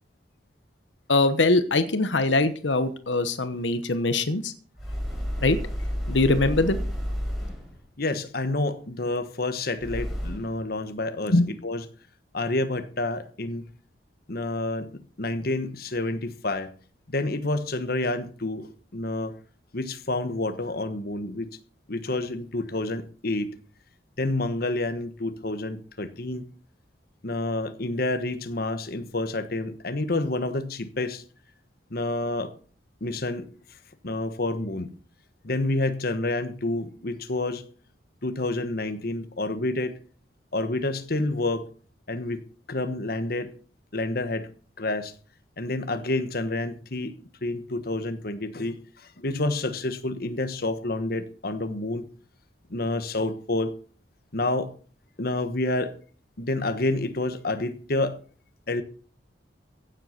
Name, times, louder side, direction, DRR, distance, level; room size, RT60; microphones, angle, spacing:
voice 1, 1.1-4.5 5.4-5.6 6.1-6.8 11.3-11.4, left 2 dB, 85° left, 1.1 m, -22 dB
sound 1, 4.8-7.8 9.8-10.6, equal, ahead, 4.9 m, -31 dB
voice 2, 8.0-11.9 12.3-13.7 14.3-14.9 15.2-16.7 17.1-19.4 19.7-21.5 21.9-23.5 24.2-26.5 27.2-31.2 31.9-32.5 33.0-33.5 34.0-34.9 35.4-37.6 38.2-40.0 40.5-41.7 42.1-42.4 42.7-43.5 43.9-44.5 44.8-45.1 45.6-52.1 52.7-53.7 54.3-54.7 55.2-55.9 56.4-58.2 58.7-58.8, left 2 dB, 55° left, 1.3 m, -29 dB
16.0 x 7.8 x 5.9 m
head